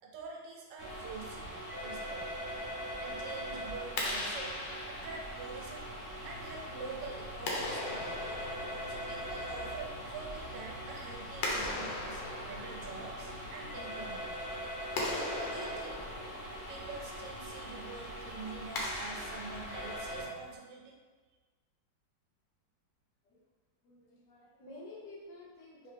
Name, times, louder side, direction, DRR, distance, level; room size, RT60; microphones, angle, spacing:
voice 1, 0.0-2.4 3.0-4.6 4.9-8.2 8.9-14.4 15.2-16.0 16.7-21.0, right 4 dB, 80° right, -1 dB, 1.4 m, -46 dB
sound 1, 0.8-20.2, equal, 55° left, 1.3 m, -42 dB
Clapping, 3.8-20.5, left 2 dB, 85° left, 1.4 m, -41 dB
sound 2, 6.2-13.8, left 3 dB, 25° left, 1.3 m, -54 dB
voice 2, 23.8-25.9, left 2 dB, 70° left, -4 dB, 1.4 m, -51 dB
3.9 x 3.1 x 3.3 m, 1.4 s
omnidirectional pair, 2.0 m